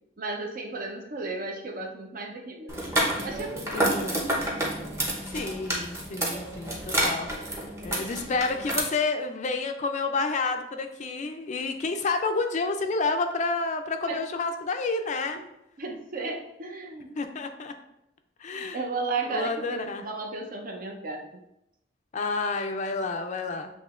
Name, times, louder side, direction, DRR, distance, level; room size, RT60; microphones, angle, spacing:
voice 1, 0.2-2.9 3.2-4.3 14.1-14.2 15.8-17.2 18.5-21.2, right 3 dB, 50° right, 2 dB, 0.7 m, -34 dB
sound 1, 2.7-8.8, right 1 dB, 15° right, 0.8 m, -29 dB
voice 2, 3.7-4.2 5.2-7.3 7.8-15.4 17.2-17.7 18.4-18.9 19.2-20.0 22.1-23.7, left 3 dB, 40° left, 6 dB, 0.4 m, -29 dB
7.5 x 2.9 x 2.4 m, 0.82 s
head